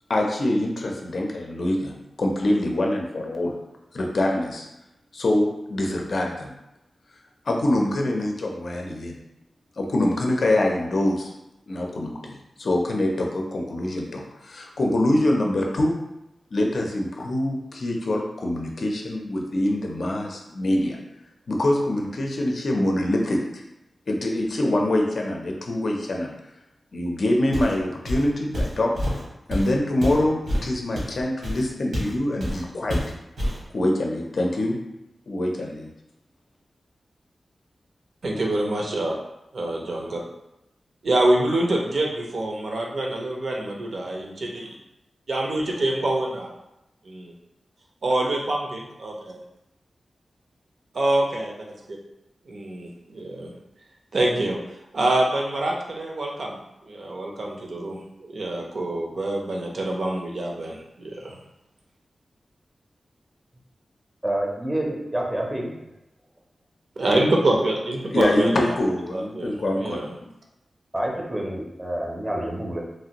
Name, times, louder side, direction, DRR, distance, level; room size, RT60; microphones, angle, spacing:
voice 1, 0.1-3.5 3.9-4.7 5.1-6.5 7.5-9.2 9.8-11.3 11.7-16.0 16.5-21.0 21.5-23.6 24.1-26.3 26.9-28.9 29.5-33.0 33.7-34.8 35.3-35.9 68.1-70.0, left 1 dB, 65° left, 1 dB, 0.5 m, -24 dB
Walk footsteps, 27.5-27.8 28.0-32.1 32.4-32.6 32.9-33.6, equal, 90° right, 1.2 m, -28 dB
voice 2, 38.2-39.2 39.5-40.2 41.0-44.7 45.3-46.5 47.0-47.3 48.0-49.4 50.9-52.0 52.5-53.5 54.1-54.6 54.9-56.6 56.9-61.4 67.0-68.7 69.1-70.1, right 1 dB, 70° right, -1 dB, 0.6 m, -25 dB
voice 3, 64.2-65.9 70.9-72.8, right 1 dB, 15° right, -1 dB, 0.5 m, -28 dB
3.1 x 2.5 x 2.8 m, 0.89 s
wide cardioid pair, 90°, 0 cm